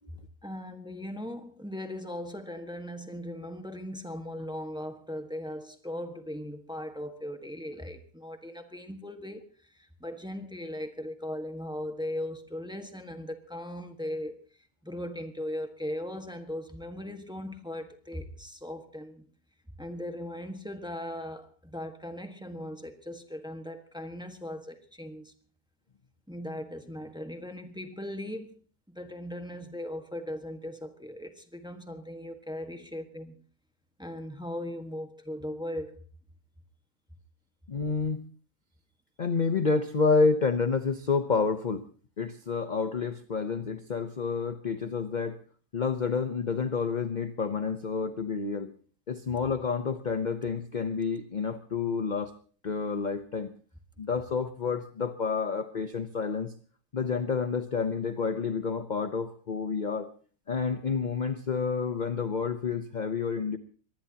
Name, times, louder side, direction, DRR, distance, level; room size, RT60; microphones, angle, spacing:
voice 1, 0.4-14.4 14.8-19.3 19.8-25.3 26.3-28.5 28.9-33.4 34.0-36.0, left 1 dB, 5° right, 1.3 m, -38 dB
voice 2, 37.7-38.2 39.2-41.8 42.2-45.4 45.7-48.7 49.1-52.3 52.6-53.5 54.0-56.5 56.9-60.1 60.5-63.6, left 5 dB, 40° left, 0.7 m, -29 dB
24.0 x 19.0 x 2.9 m
omnidirectional pair, 1.8 m